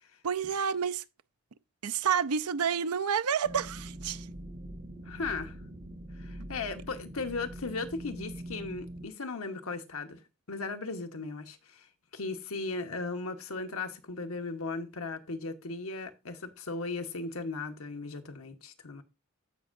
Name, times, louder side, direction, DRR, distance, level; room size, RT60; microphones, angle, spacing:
voice 1, 0.2-1.0 1.8-4.3, right 7 dB, 80° right, 0.6 m, -29 dB
sound 1, 3.4-9.1, right 1 dB, 35° right, 0.8 m, -43 dB
voice 2, 5.0-5.5 6.2-10.2 10.5-11.9 12.1-19.0, left 3 dB, 65° left, 1.2 m, -37 dB
14.5 x 5.4 x 2.6 m
head